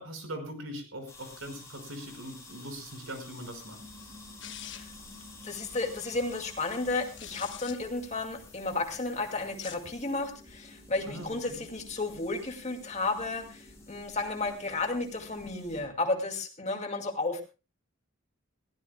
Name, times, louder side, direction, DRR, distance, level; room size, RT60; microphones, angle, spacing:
voice 1, 0.0-3.8 11.1-11.6, right 1 dB, 85° right, 7 dB, 5.2 m, -41 dB
sound 1, 1.1-15.8, left 4 dB, 15° left, 5.7 m, -53 dB
sound 2, 3.7-15.9, left 1 dB, 15° right, 5.1 m, -53 dB
sound 3, 4.4-5.0 6.9-7.8 9.5-9.9, left 10 dB, 60° left, 1.3 m, -44 dB
voice 2, 5.4-17.4, left 3 dB, 35° left, 4 dB, 2.3 m, -33 dB
21.5 x 16.0 x 2.2 m, 0.32 s
head